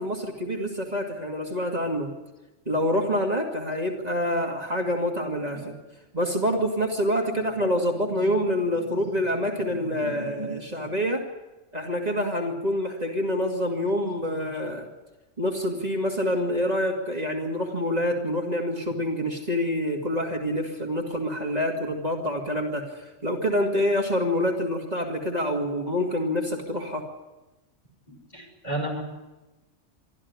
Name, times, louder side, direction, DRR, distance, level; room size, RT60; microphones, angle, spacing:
voice 1, 0.0-2.1 2.7-5.8 6.1-11.2 11.7-14.9 15.4-27.0, left 1 dB, 35° right, 0 dB, 2.6 m, -26 dB
voice 2, 7.6-10.9 28.3-29.0, right 1 dB, 35° left, 1 dB, 5.8 m, -37 dB
23.5 x 14.0 x 9.7 m, 1.1 s
omnidirectional pair, 1.2 m